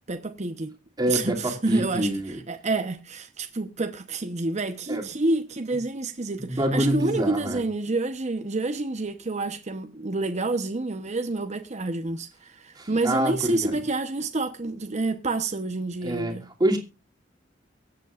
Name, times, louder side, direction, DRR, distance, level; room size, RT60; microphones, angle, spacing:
voice 1, 0.1-0.7 1.1-16.5, right 2 dB, 35° right, 0.9 m, -28 dB
voice 2, 1.0-2.4 4.9-5.1 6.4-7.6 12.8-13.7 16.0-16.3 16.6-16.8, right 1 dB, 20° right, 2.6 m, -26 dB
23.5 x 8.3 x 2.5 m
head